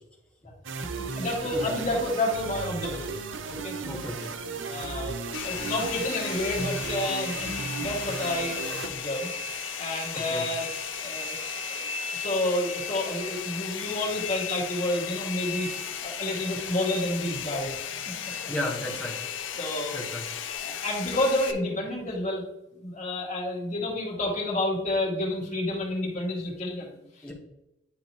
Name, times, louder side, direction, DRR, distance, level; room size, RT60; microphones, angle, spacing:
sound 1, 0.6-8.9, right 4 dB, 85° right, 0.6 m, -35 dB
voice 1, 1.0-3.2 3.6-3.8 4.6-5.2 5.4-9.3 9.8-10.7 11.0-11.4 11.8-15.7 16.0-17.8 18.1-18.2 19.6-20.0 20.6-22.4 22.8-27.3, left 1 dB, 40° left, -3 dB, 2.2 m, -30 dB
voice 2, 3.8-4.3 10.1-10.4 18.5-19.1 19.9-20.2 27.2-27.3, left 1 dB, 5° left, -3 dB, 1.4 m, -33 dB
Domestic sounds home sounds, 5.3-21.5, left 7 dB, 85° left, 0.7 m, -35 dB
10.5 x 3.9 x 3.1 m, 0.89 s
head